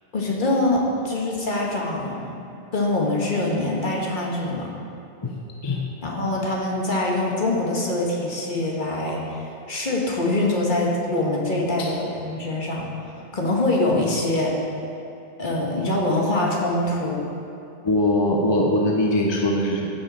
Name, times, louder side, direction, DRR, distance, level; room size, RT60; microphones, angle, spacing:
voice 1, 0.1-2.3 2.7-4.7 6.0-14.6 15.4-17.3, left 2 dB, 50° left, -2 dB, 1.5 m, -24 dB
voice 2, 17.8-20.0, left 1 dB, 30° left, -1 dB, 0.8 m, -21 dB
15.0 x 5.5 x 4.1 m, 2.8 s
omnidirectional pair, 1.0 m